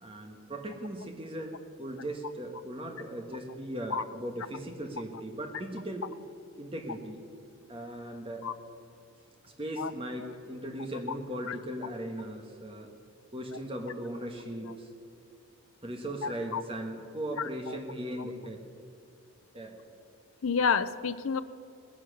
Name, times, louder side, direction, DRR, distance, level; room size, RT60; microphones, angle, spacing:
voice 1, 0.0-6.1 6.6-7.2 7.7-8.5 9.4-12.9 13.3-14.9 15.8-18.6 19.5-19.8, right 1 dB, 25° right, 3 dB, 1.4 m, -38 dB
voice 2, 20.4-21.4, left 6 dB, 65° left, 14 dB, 0.5 m, -28 dB
19.0 x 10.0 x 6.5 m, 2.7 s
head